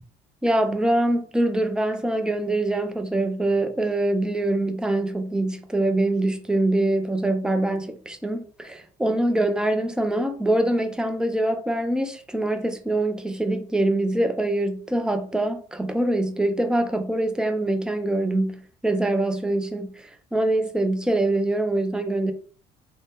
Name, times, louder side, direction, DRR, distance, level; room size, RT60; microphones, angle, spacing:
voice 1, 0.4-22.3, right 1 dB, 5° right, 0.4 m, -24 dB
2.6 x 2.1 x 3.4 m
cardioid pair, 110°, 17 cm